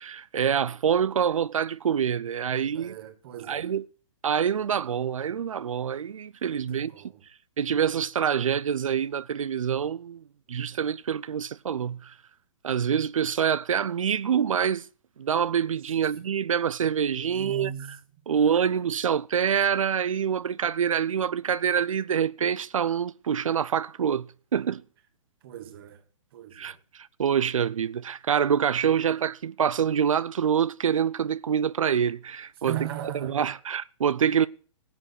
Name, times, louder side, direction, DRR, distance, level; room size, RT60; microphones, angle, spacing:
voice 1, 0.0-2.9 3.5-3.8 4.2-6.9 7.6-12.1 12.6-14.9 15.2-17.7 18.3-24.3 24.5-24.8 26.5-32.8 33.2-34.5, right 8 dB, 80° right, 0.5 m, -26 dB
voice 2, 2.5-3.7 6.4-7.2 15.9-16.1 17.2-18.0 18.3-18.7 25.4-26.1 26.3-26.8 32.6-33.5, right 11 dB, 45° right, 1.7 m, -39 dB
16.0 x 8.0 x 6.4 m
hypercardioid pair, 135°, 17 cm